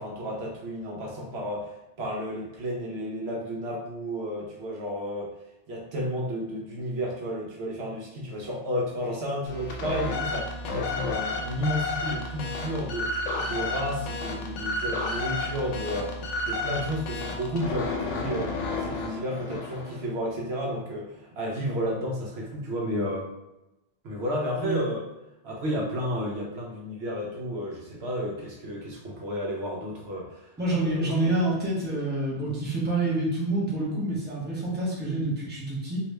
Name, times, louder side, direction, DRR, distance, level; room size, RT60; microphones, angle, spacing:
voice 1, 0.0-1.7 2.0-5.3 5.7-16.2 16.4-18.5 18.8-23.3 24.0-25.1 25.4-31.4, equal, 65° right, -3 dB, 0.9 m, -32 dB
sound 1, 9.5-20.0, left 2 dB, 90° left, 1.0 m, -32 dB
voice 2, 30.6-36.0, right 2 dB, 10° right, -6 dB, 0.8 m, -27 dB
3.2 x 2.7 x 3.1 m, 0.93 s
omnidirectional pair, 1.2 m